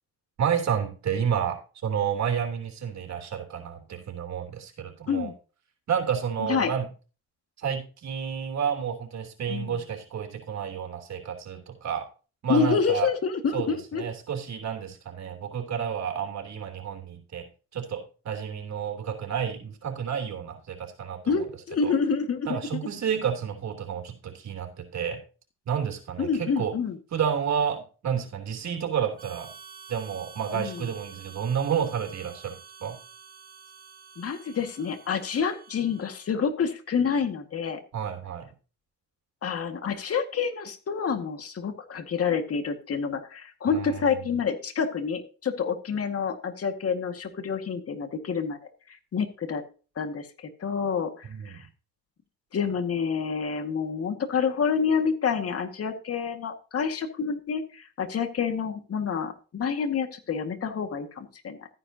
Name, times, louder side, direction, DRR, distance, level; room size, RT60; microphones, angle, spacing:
voice 1, 0.4-5.3 5.9-6.9 7.6-12.0 12.4-13.1 13.5-17.4 17.7-21.4 21.8-21.9 22.4-25.2 25.6-26.7 27.1-29.5 29.9-33.0 37.9-38.5 43.7-44.2 51.3-51.7, right 8 dB, 65° right, 3 dB, 3.2 m, -30 dB
voice 2, 12.5-14.0 21.3-22.8 26.2-27.0 30.5-30.9 34.2-37.8 39.4-48.6 48.9-49.6 50.0-51.7 52.5-61.6, left 6 dB, 50° left, 7 dB, 1.9 m, -28 dB
Harmonica, 29.2-36.5, right 6 dB, 30° right, 2.2 m, -49 dB
13.5 x 9.8 x 2.8 m, 0.35 s
cardioid pair, 90°, 30 cm